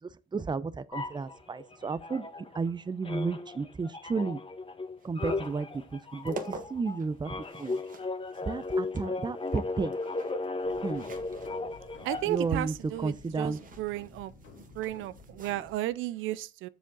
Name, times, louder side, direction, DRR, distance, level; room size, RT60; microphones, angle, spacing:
voice 1, 0.3-2.3 2.5-4.4 5.0-7.8 8.5-9.9 10.8-11.1 12.2-13.6, right 4 dB, 20° right, 0.6 m, -32 dB
sound 1, 0.9-2.7 3.0-12.5, left 3 dB, 25° left, 1.5 m, -36 dB
sound 2, 5.0-15.8, right 5 dB, 45° right, 1.6 m, -50 dB
sound 3, 10.6-15.7, left 3 dB, 90° left, 3.6 m, -52 dB
voice 2, 12.0-14.3 14.8-16.7, right 15 dB, 90° right, 0.5 m, -33 dB
7.3 x 7.1 x 3.9 m
cardioid pair, 90°, 20 cm